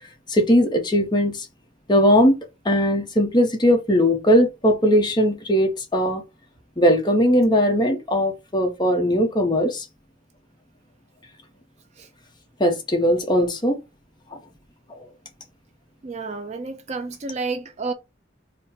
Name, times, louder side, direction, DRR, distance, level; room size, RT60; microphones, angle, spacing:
voice 1, 0.3-1.5 1.9-2.3 2.6-6.2 6.8-9.9 12.6-13.8, equal, 20° left, 0.8 m, -19 dB
voice 2, 16.0-17.9, right 3 dB, 35° right, 0.4 m, -30 dB
4.2 x 2.1 x 4.1 m
head